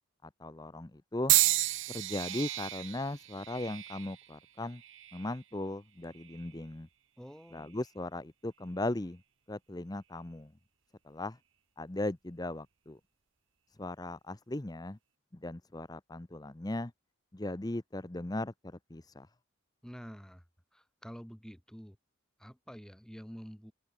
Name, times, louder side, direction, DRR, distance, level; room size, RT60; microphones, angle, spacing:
voice 1, 0.2-1.3 1.9-4.8 5.1-6.9 7.5-9.2 9.5-10.5 11.1-11.4 11.8-13.0 13.8-15.0 15.4-16.9 17.3-19.3, left 2 dB, 20° left, 0.7 m, -38 dB
sound 1, 1.3-5.4 6.1-6.6 7.5-7.7, right 16 dB, 65° right, 1.9 m, -32 dB
voice 2, 7.2-7.8 19.8-20.4 20.7-22.0 22.4-23.7, equal, 5° left, 7.7 m, -48 dB
head